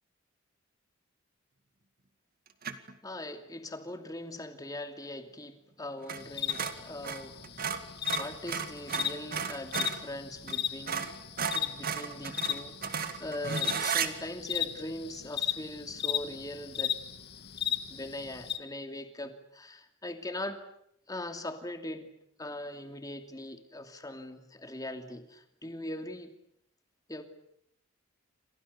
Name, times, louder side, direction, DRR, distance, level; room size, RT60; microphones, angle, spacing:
sound 1, 2.6-2.9 6.0-6.2 6.5-10.0 10.5-10.6 10.9-14.1, right 6 dB, 45° right, 2.1 m, -34 dB
voice 1, 3.0-11.1 11.5-17.0 17.9-20.6 21.1-22.1 22.4-26.3 27.1-27.2, left 1 dB, 20° left, 6 dB, 2.7 m, -41 dB
sound 2, 6.2-18.6, left 9 dB, 50° left, 1.9 m, -36 dB
29.5 x 26.0 x 6.9 m, 0.74 s
head